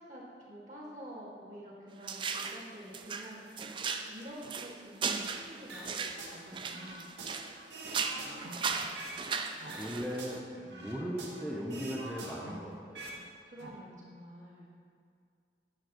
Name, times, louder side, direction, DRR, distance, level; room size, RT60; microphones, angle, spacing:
voice 1, 0.0-3.8 4.1-7.5 7.9-9.0 13.5-14.7, equal, 45° right, -6 dB, 2.0 m, -49 dB
sound 1, 2.0-2.6 2.9-7.6 7.8-10.4, right 5 dB, 30° right, 0.3 m, -37 dB
sound 2, 5.7-6.4 6.7-9.2 9.6-11.4 11.7-13.2 13.5-13.7, right 2 dB, 85° right, 1.2 m, -45 dB
voice 2, 9.7-13.1, equal, ahead, -6 dB, 0.8 m, -38 dB
10.5 x 7.4 x 3.0 m, 2.2 s
head